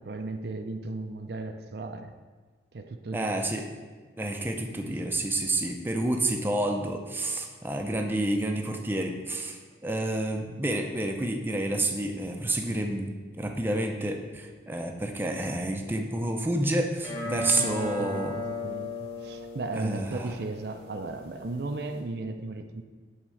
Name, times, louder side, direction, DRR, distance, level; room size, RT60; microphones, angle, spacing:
voice 1, 0.0-2.1 2.7-3.5 4.8-5.0 10.5-10.6 17.6-22.8, right 3 dB, 60° right, 6 dB, 0.5 m, -36 dB
voice 2, 3.1-3.7 4.2-18.3 19.7-20.3, right 1 dB, 10° right, 2 dB, 0.6 m, -29 dB
sound 1, 17.0-22.0, left 3 dB, 35° left, 2.1 m, -37 dB
8.9 x 3.7 x 6.3 m, 1.4 s
head